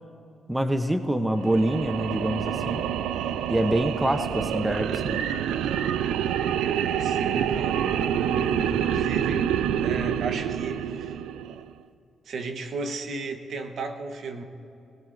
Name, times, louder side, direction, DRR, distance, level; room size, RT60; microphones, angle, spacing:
voice 1, 0.5-2.8 3.5-5.2, right 1 dB, 10° right, 8 dB, 0.8 m, -25 dB
sound 1, 1.4-11.7, right 9 dB, 85° right, 0.4 m, -27 dB
voice 2, 7.0-9.5 9.8-11.2 12.2-14.4, right 3 dB, 65° right, 6 dB, 1.0 m, -34 dB
21.5 x 17.0 x 2.6 m, 2.7 s
cardioid pair, 80°, 0 cm